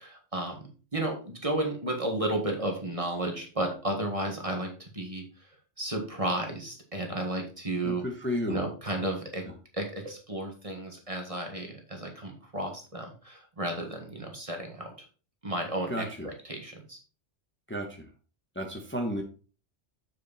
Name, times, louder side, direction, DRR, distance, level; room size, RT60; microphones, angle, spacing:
voice 1, 0.0-5.2 5.8-8.0 8.5-9.4 9.7-14.9 15.4-17.0, right 1 dB, 30° right, 2 dB, 1.9 m, -33 dB
voice 2, 7.8-8.6 15.9-16.3 17.7-18.1 18.5-19.2, equal, 10° left, 1 dB, 1.3 m, -32 dB
7.5 x 6.4 x 4.2 m, 0.36 s
omnidirectional pair, 1.2 m